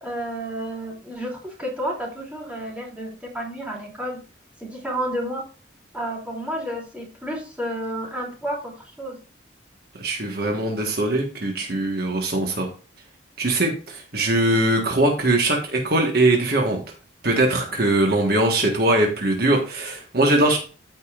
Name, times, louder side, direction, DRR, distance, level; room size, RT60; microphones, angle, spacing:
voice 1, 0.0-4.2 4.6-5.4 5.9-9.2, right 1 dB, 5° right, -3 dB, 2.9 m, -31 dB
voice 2, 9.9-12.7 13.4-16.8 17.2-20.6, right 1 dB, 50° right, 1 dB, 1.5 m, -21 dB
13.5 x 5.4 x 2.5 m, 0.37 s
head